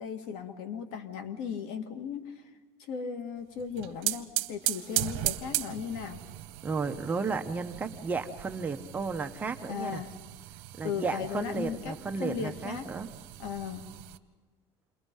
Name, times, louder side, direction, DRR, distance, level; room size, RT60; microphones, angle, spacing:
voice 1, 0.0-2.4 2.8-6.2 9.7-10.1 10.8-12.9 13.4-13.8, left 7 dB, 75° left, 7 dB, 2.1 m, -36 dB
sound 1, 3.6-14.2, right 18 dB, 90° right, 0.9 m, -37 dB
voice 2, 6.6-10.0 10.8-13.1, right 4 dB, 15° right, 5 dB, 0.9 m, -33 dB
28.5 x 22.0 x 5.5 m, 1.3 s
cardioid pair, 170°, 11 cm